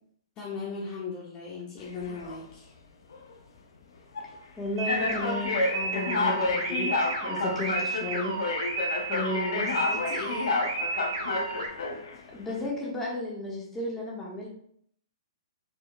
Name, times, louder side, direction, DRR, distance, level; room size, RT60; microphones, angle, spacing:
voice 1, 0.4-2.7 9.6-10.5, left 4 dB, 30° left, -4 dB, 1.0 m, -38 dB
sound 1, 1.8-2.4 3.1-3.3 4.2-4.3 4.9-12.2, left 3 dB, 70° left, 0.8 m, -30 dB
voice 2, 4.6-8.4 9.1-9.8 12.3-14.5, left 2 dB, 15° left, -3 dB, 1.4 m, -33 dB
sound 2, 4.8-11.7, right 4 dB, 65° right, 1.3 m, -33 dB
4.4 x 4.3 x 2.3 m, 0.64 s
hypercardioid pair, 130°, 3 cm